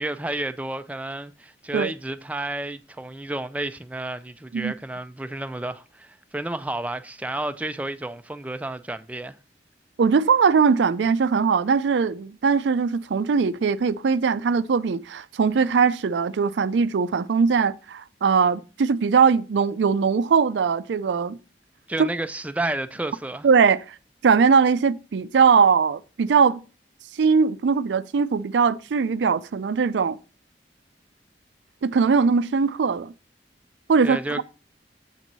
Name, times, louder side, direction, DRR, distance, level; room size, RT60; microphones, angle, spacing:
voice 1, 0.0-9.4 21.9-23.5 34.0-34.4, right 2 dB, 10° right, 0.4 m, -31 dB
voice 2, 10.0-21.4 22.0-22.1 23.4-23.8 24.2-26.6 27.2-30.2 31.8-33.1 33.9-34.4, right 5 dB, 85° right, 0.4 m, -20 dB
7.5 x 4.5 x 4.0 m
head